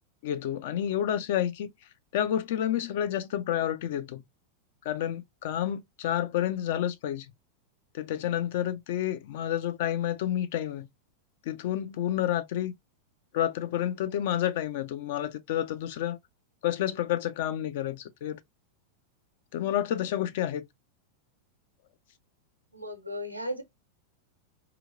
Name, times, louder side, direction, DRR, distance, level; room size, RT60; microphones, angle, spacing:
voice 1, 0.2-1.7 2.1-4.2 4.9-7.3 7.9-10.9 11.5-12.7 13.3-16.2 16.6-18.4 19.5-20.7, left 11 dB, 50° left, 0.3 m, -29 dB
voice 2, 22.7-23.6, equal, 90° right, 0.5 m, -35 dB
2.8 x 2.0 x 2.4 m
figure-of-eight pair, 90°, 0 cm